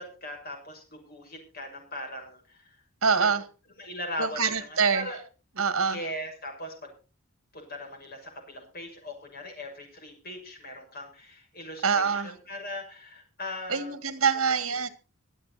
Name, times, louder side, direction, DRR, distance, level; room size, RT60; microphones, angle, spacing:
voice 1, 0.0-2.8 3.2-3.4 3.8-5.2 5.8-6.9 7.5-13.9, left 1 dB, 45° left, 6.6 m, -39 dB
voice 2, 3.0-3.4 4.2-5.1 5.6-6.0 11.8-12.3 13.7-14.9, right 5 dB, 75° right, 2.0 m, -25 dB
24.5 x 8.6 x 4.2 m
head